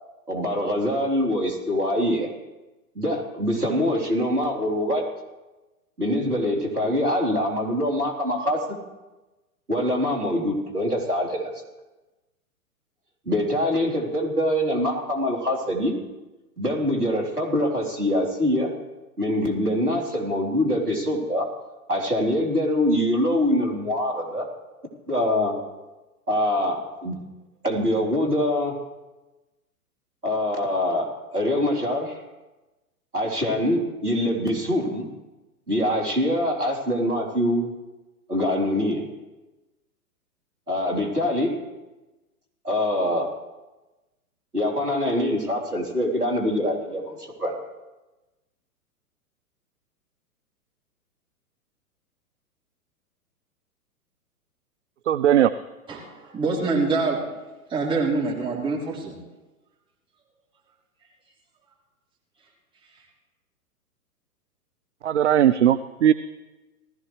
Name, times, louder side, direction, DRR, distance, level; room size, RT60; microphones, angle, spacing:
voice 1, 0.3-2.3 3.0-5.0 6.0-8.8 9.7-11.5 13.3-15.9 16.6-18.7 19.2-21.5 21.9-24.5 25.1-25.6 26.3-27.1 27.6-28.7 30.2-32.2 33.1-35.1 35.7-37.7 38.3-39.0 40.7-41.5 42.6-43.3 44.5-47.5, left 1 dB, 85° right, -1 dB, 3.8 m, -24 dB
voice 2, 55.1-55.5 65.0-66.1, right 10 dB, 50° right, 13 dB, 0.5 m, -18 dB
voice 3, 55.9-57.2 57.7-59.2, right 3 dB, 10° right, -4 dB, 3.3 m, -25 dB
19.5 x 14.5 x 3.3 m, 1.1 s
figure-of-eight pair, 110°, 45 cm